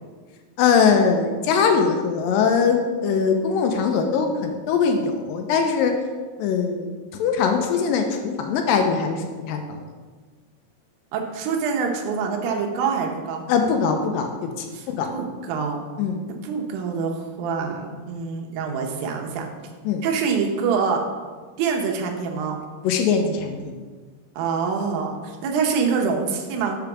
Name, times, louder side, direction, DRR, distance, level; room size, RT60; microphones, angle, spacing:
voice 1, 0.6-5.9 6.4-6.9 7.2-9.6 13.5-14.5 14.9-15.1 16.0-16.2 19.9-20.0 22.8-23.7, left 6 dB, 80° left, 4 dB, 2.2 m, -21 dB
voice 2, 11.1-13.4 14.7-15.8 16.3-19.5 20.0-21.0 21.6-22.6 24.4-26.8, right 5 dB, 80° right, 2 dB, 2.6 m, -25 dB
5.7 x 5.2 x 5.9 m, 1.5 s
omnidirectional pair, 4.2 m